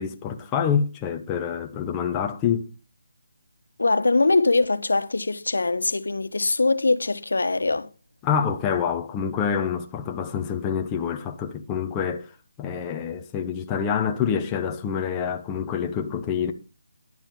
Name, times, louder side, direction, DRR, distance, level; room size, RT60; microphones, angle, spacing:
voice 1, 0.0-2.7 8.2-12.3 12.6-16.5, left 7 dB, 10° left, 0.7 m, -26 dB
voice 2, 3.8-7.9, left 3 dB, 90° left, 1.3 m, -22 dB
11.0 x 7.7 x 5.4 m
hypercardioid pair, 175°, 0 cm